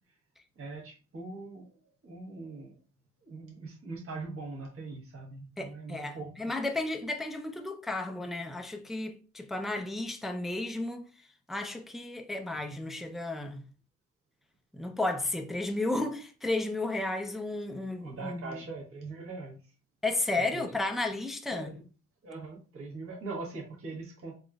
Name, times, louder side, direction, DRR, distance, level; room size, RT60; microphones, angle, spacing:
voice 1, 0.6-2.8 3.2-6.5 17.2-17.3 18.0-19.6 20.4-20.7 21.5-21.8 22.2-24.4, right 3 dB, 45° right, 1.2 m, -42 dB
voice 2, 5.6-11.1 11.5-13.6 14.7-18.4 20.0-21.7, left 2 dB, ahead, 0.3 m, -33 dB
3.5 x 2.5 x 2.3 m
cardioid pair, 90°, 30 cm